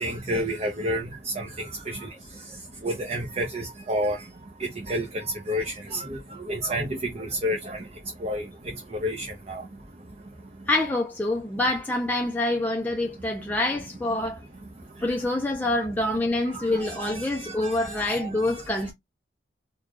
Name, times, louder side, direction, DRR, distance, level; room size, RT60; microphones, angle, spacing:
voice 1, 0.0-2.1 2.8-4.2 4.9-6.2 6.5-7.8 8.2-8.4 9.0-9.6 16.8-18.3, equal, 35° right, 0.7 m, -30 dB
voice 2, 10.7-14.4 15.0-18.9, left 2 dB, 10° left, 0.5 m, -26 dB
3.6 x 2.3 x 3.0 m
head